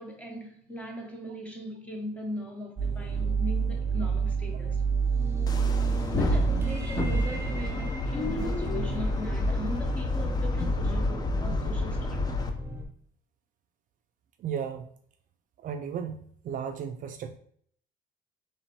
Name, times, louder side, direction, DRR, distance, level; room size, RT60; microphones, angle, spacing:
voice 1, 0.0-4.8 5.8-12.3, left 1 dB, 10° left, 0 dB, 1.0 m, -39 dB
sound 1, 2.8-12.8, right 4 dB, 15° right, 0.7 m, -30 dB
sound 2, 5.5-12.5, left 1 dB, 25° left, 0.5 m, -29 dB
voice 2, 14.4-14.9 15.6-16.2 16.4-17.4, right 7 dB, 50° right, 6 dB, 0.4 m, -34 dB
3.0 x 2.8 x 4.5 m, 0.62 s
cardioid pair, 110°, 17 cm